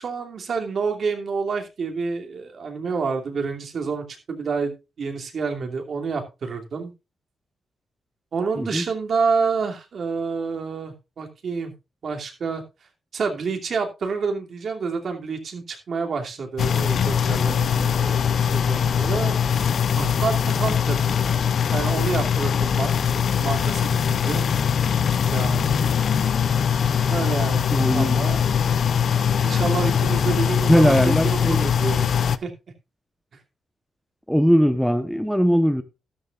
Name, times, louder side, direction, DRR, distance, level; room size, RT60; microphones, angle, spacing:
voice 1, 0.0-6.9 8.3-11.7 12.0-12.6 13.1-19.4 19.9-21.1 21.7-24.5 25.3-25.9 27.1-28.4 29.4-32.1 32.4-32.5, right 5 dB, 55° right, 2.8 m, -28 dB
sound 1, 16.6-32.4, left 7 dB, 60° left, 0.7 m, -22 dB
voice 2, 27.7-28.2 30.7-31.7 34.3-35.8, equal, ahead, 1.0 m, -19 dB
13.0 x 13.0 x 2.5 m
cardioid pair, 105°, 0 cm